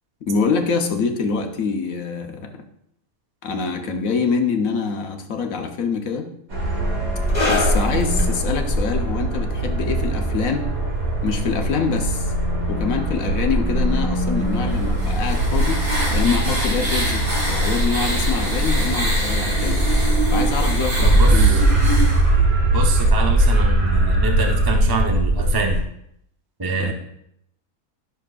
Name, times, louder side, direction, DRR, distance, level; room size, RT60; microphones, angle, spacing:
voice 1, 0.2-2.6 3.4-6.3 7.5-10.7 11.2-12.3 12.7-15.8 16.1-19.8 20.3-21.8 26.8-26.9, left 5 dB, 70° left, 5 dB, 1.3 m, -25 dB
sound 1, 6.5-25.8, right 1 dB, 70° right, 1.9 m, -20 dB
sound 2, 7.3-14.3 14.5-14.8 15.5-15.6, left 3 dB, 30° left, 1.4 m, -31 dB
sound 3, 14.7-22.2, right 1 dB, 50° right, 2.3 m, -26 dB
voice 2, 21.0-21.6 22.7-25.8 26.6-26.9, right 3 dB, 25° right, 2 dB, 0.5 m, -25 dB
11.5 x 6.5 x 2.4 m, 0.74 s
omnidirectional pair, 1.5 m